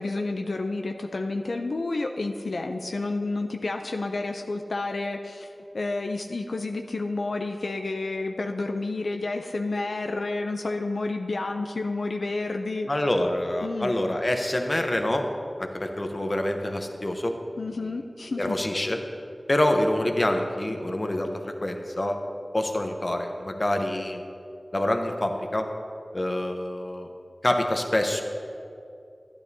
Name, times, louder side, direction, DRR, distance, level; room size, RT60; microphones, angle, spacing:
voice 1, 0.0-5.5 5.7-12.9 13.6-13.9 17.6-18.5, left 2 dB, 90° left, 4 dB, 0.4 m, -30 dB
voice 2, 12.9-15.3 15.6-17.3 18.4-19.0 19.5-22.2 22.5-24.2 24.7-25.7 26.1-27.1 27.4-28.2, left 1 dB, 40° left, 4 dB, 0.8 m, -26 dB
12.0 x 10.5 x 2.7 m, 2.6 s
wide cardioid pair, 50°, 0 cm